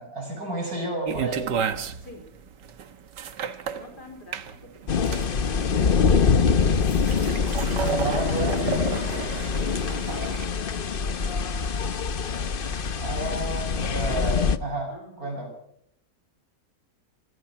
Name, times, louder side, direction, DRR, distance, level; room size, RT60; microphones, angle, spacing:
voice 1, 0.0-1.5 7.8-9.3 12.9-15.5, right 2 dB, 60° right, 3 dB, 7.7 m, -31 dB
sound 1, 1.1-10.5, right 7 dB, 90° right, 1.9 m, -32 dB
voice 2, 3.7-5.1 12.4-12.5 13.1-13.6 14.9-15.5, left 2 dB, 75° left, 4 dB, 5.0 m, -46 dB
sound 2, 4.9-14.6, left 5 dB, 40° left, 0.9 m, -24 dB
26.0 x 18.0 x 5.9 m, 0.69 s
omnidirectional pair, 1.8 m